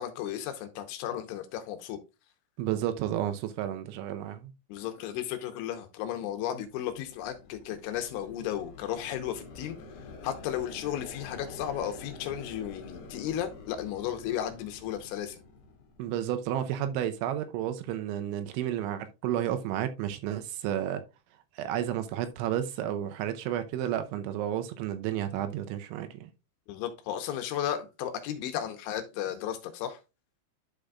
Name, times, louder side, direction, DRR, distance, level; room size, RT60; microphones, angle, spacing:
voice 1, 0.0-2.0 4.7-9.8 10.2-15.4 26.7-30.0, left 10 dB, 80° left, 3.2 m, -34 dB
voice 2, 2.6-4.5 16.0-21.0 21.6-26.3, right 11 dB, 80° right, 3.0 m, -31 dB
sound 1, 6.6-16.4, left 4 dB, 60° left, 3.0 m, -47 dB
11.5 x 5.1 x 2.3 m
omnidirectional pair, 5.6 m